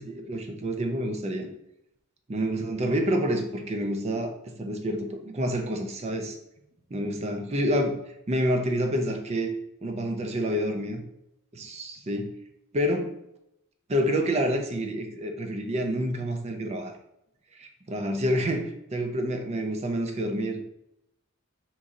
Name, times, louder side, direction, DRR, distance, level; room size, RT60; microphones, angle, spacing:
voice 1, 0.0-1.5 2.3-6.4 6.9-7.9 8.3-9.5 9.8-11.0 11.5-12.3 12.7-13.1 13.9-16.9 17.6-20.6, equal, 30° right, 4 dB, 0.4 m, -28 dB
3.0 x 2.6 x 3.7 m, 0.80 s
head